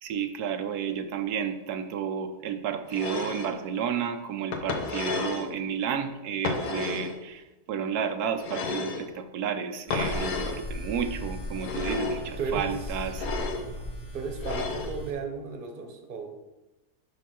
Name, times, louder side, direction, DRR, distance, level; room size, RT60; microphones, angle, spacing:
voice 1, 0.0-13.3, right 7 dB, 90° right, 7 dB, 1.2 m, -31 dB
sound 1, 2.9-3.5 4.5-5.5 6.4-7.2 8.4-9.1 9.9-10.6 11.5-12.2 13.1-13.7 14.4-14.9, left 4 dB, 70° left, 1.4 m, -32 dB
sound 2, 9.9-15.1, left 1 dB, 40° left, 1.6 m, -37 dB
voice 2, 12.4-12.7 14.1-16.3, right 4 dB, 40° right, 4 dB, 1.0 m, -34 dB
5.8 x 5.5 x 5.6 m, 1.0 s
omnidirectional pair, 1.6 m